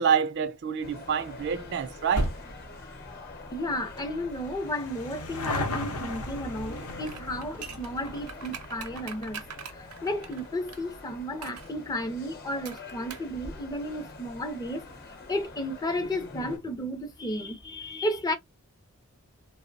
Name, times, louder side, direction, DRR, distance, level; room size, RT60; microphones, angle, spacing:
voice 1, 0.0-2.3, right 7 dB, 50° right, 0.3 m, -27 dB
sound 1, 0.8-16.6, left 3 dB, 45° left, 0.8 m, -45 dB
sound 2, 1.4-14.1 14.4-14.5 15.4-15.5 15.7-15.8 16.1-16.2, left 1 dB, 85° left, 0.8 m, -38 dB
voice 2, 3.5-9.4 9.7-14.9 15.3-18.3, left 1 dB, 15° left, 0.4 m, -33 dB
sound 3, 7.1-10.8 11.4-11.7 12.7-13.3 13.6-13.7, right 7 dB, 90° right, 0.6 m, -42 dB
3.1 x 2.0 x 2.5 m
head